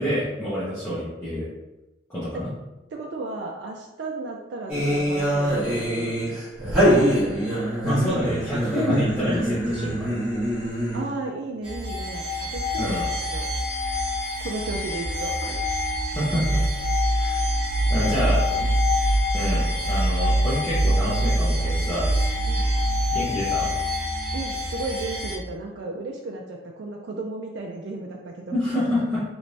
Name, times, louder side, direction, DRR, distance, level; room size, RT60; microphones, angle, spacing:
voice 1, 0.0-1.4 2.1-2.5 7.8-10.1 12.8-13.1 16.1-16.6 17.2-17.4 17.9-18.4 19.3-22.1 23.1-23.7 28.5-29.2, left 1 dB, 15° left, -11 dB, 0.8 m, -27 dB
voice 2, 2.9-6.4 10.9-13.0 13.3-13.5 14.4-15.7 18.1-18.6 22.4-22.7 24.3-28.6, right 2 dB, 70° right, 0 dB, 0.4 m, -34 dB
sound 1, 4.7-11.2, equal, 5° right, 1.4 m, -24 dB
sound 2, 11.6-25.3, equal, 30° right, 0.8 m, -24 dB
3.3 x 3.0 x 2.6 m, 1.0 s
head